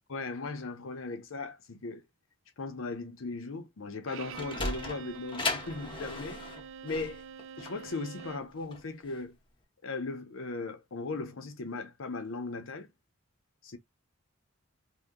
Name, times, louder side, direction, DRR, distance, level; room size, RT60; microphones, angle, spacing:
voice 1, 0.1-2.0 2.6-6.4 6.8-7.2 7.6-9.4 9.8-12.9 13.6-13.8, left 3 dB, 90° left, 0.7 m, -38 dB
Sliding door, 4.0-9.2, left 3 dB, 25° left, 0.7 m, -37 dB
Bowed string instrument, 4.1-8.6, right 7 dB, 65° right, 0.3 m, -46 dB
2.7 x 2.2 x 3.4 m
head